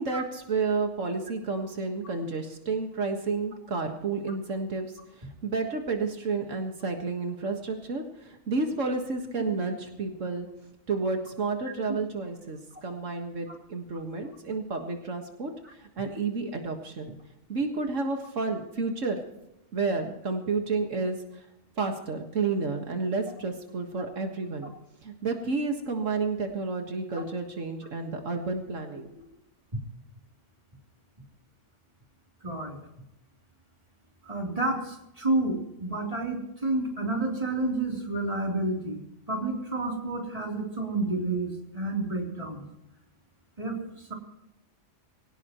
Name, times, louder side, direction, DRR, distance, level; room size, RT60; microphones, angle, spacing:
voice 1, 0.0-10.5 10.9-17.1 17.5-19.2 19.7-21.5 21.8-24.7 25.0-29.1, right 4 dB, 80° right, 3 dB, 2.0 m, -31 dB
voice 2, 32.4-32.8 34.2-39.0 39.3-42.7 43.6-44.1, right 2 dB, 30° right, 0 dB, 3.6 m, -30 dB
22.5 x 18.0 x 3.1 m, 0.88 s
omnidirectional pair, 1.3 m